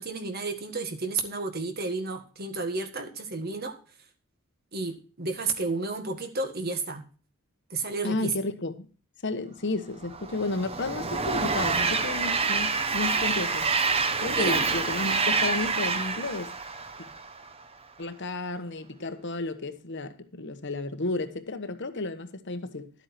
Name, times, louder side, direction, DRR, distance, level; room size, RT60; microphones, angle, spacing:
voice 1, 0.0-3.7 4.7-7.0 7.7-8.3 14.3-14.6, right 3 dB, 45° right, 1.6 m, -32 dB
voice 2, 8.0-8.9 9.2-13.7 14.2-16.5 17.0-17.1 18.0-22.9, left 2 dB, 55° left, 1.1 m, -32 dB
Train, 10.0-17.5, right 4 dB, 25° right, 0.9 m, -27 dB
12.0 x 8.2 x 4.3 m
head